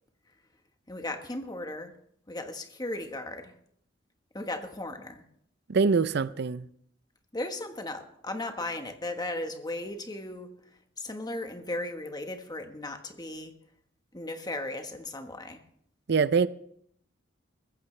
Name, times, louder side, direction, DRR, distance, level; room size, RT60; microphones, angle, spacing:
voice 1, 0.9-1.9 2.3-3.5 4.3-5.2 7.3-13.5 14.1-15.6, left 2 dB, 20° left, 1.4 m, -36 dB
voice 2, 5.7-6.7 16.1-16.5, right 5 dB, 60° right, 0.5 m, -24 dB
21.0 x 15.0 x 3.3 m
head